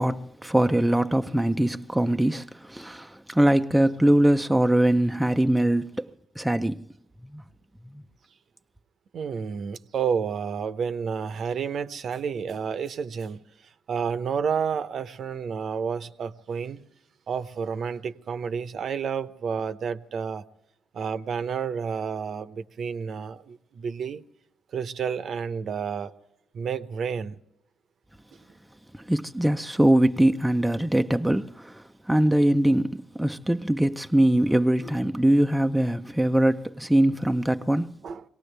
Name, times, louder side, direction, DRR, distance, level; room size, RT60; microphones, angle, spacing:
voice 1, 0.0-6.1 6.4-6.8 7.3-7.4 7.9-8.0 28.9-38.0, right 1 dB, 5° right, 0.5 m, -22 dB
voice 2, 9.1-13.4 13.9-16.8 17.3-20.4 20.9-24.2 24.7-26.1 26.5-27.4 38.0-38.2, right 6 dB, 60° right, 0.8 m, -30 dB
24.0 x 18.0 x 3.4 m
cardioid pair, 90°, 0 cm